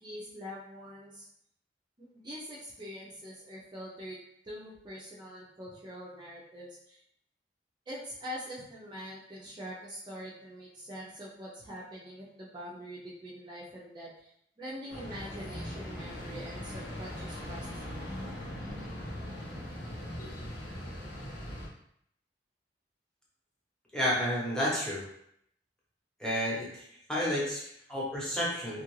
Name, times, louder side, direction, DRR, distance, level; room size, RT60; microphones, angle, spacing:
voice 1, 0.0-1.3 2.0-4.2 4.4-7.0 7.9-14.3 14.6-17.9, equal, 25° right, -7 dB, 0.5 m, -44 dB
sound 1, 14.9-21.7, left 1 dB, 90° left, 1.0 m, -40 dB
voice 2, 23.9-25.0 26.2-26.8 27.1-28.8, equal, 5° left, -6 dB, 0.9 m, -31 dB
3.0 x 2.4 x 3.1 m, 0.72 s
head